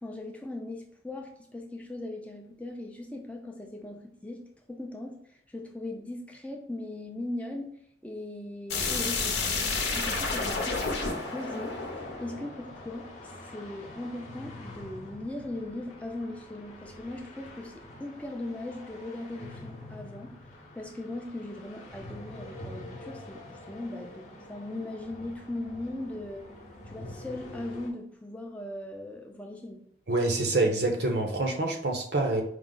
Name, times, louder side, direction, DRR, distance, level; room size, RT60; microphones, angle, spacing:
voice 1, 0.0-4.4 4.7-7.7 8.0-20.3 20.7-26.5 26.9-29.8, left 1 dB, 10° left, 2 dB, 0.4 m, -39 dB
sound 1, 8.7-13.4, left 4 dB, 85° left, 0.7 m, -31 dB
sound 2, 9.8-27.9, left 1 dB, 40° left, 0.8 m, -46 dB
voice 2, 30.1-32.4, right 2 dB, 75° right, 3 dB, 0.8 m, -26 dB
4.9 x 2.1 x 3.7 m, 0.71 s
head